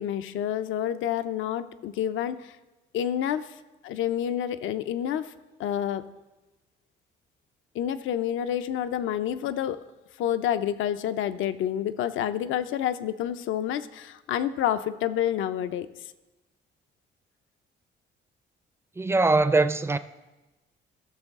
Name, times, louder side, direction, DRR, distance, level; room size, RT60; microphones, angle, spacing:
voice 1, 0.0-2.5 2.9-3.5 3.8-5.3 5.6-6.0 7.7-9.8 10.2-15.9, left 10 dB, 80° left, 0.5 m, -28 dB
voice 2, 19.0-20.0, right 3 dB, 15° right, 0.4 m, -22 dB
15.5 x 6.4 x 3.6 m
cardioid pair, 90°, 20 cm